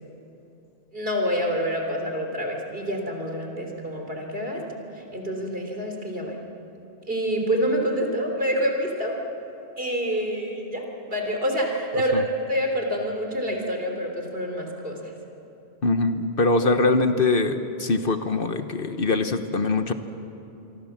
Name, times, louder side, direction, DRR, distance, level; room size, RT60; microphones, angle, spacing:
voice 1, 0.9-4.6 4.9-6.4 7.1-9.2 9.8-15.1, equal, 60° right, 2 dB, 3.8 m, -27 dB
voice 2, 15.8-19.9, left 3 dB, 55° left, 8 dB, 1.3 m, -23 dB
26.5 x 24.0 x 7.3 m, 2.9 s
omnidirectional pair, 1.1 m